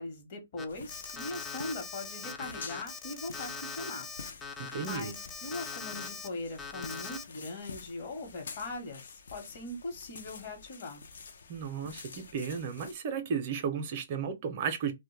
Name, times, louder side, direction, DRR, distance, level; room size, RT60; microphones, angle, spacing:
voice 1, 0.0-4.1 4.5-5.2 5.4-11.0, left 2 dB, 50° left, 1.0 m, -40 dB
Alarm, 0.6-6.3 6.6-7.2, left 5 dB, 10° left, 0.3 m, -41 dB
sound 1, 0.7-12.9, left 5 dB, 70° left, 0.5 m, -49 dB
voice 2, 4.6-5.1 11.5-14.9, right 6 dB, 40° right, 0.5 m, -34 dB
2.1 x 2.1 x 3.1 m
hypercardioid pair, 145°, 0 cm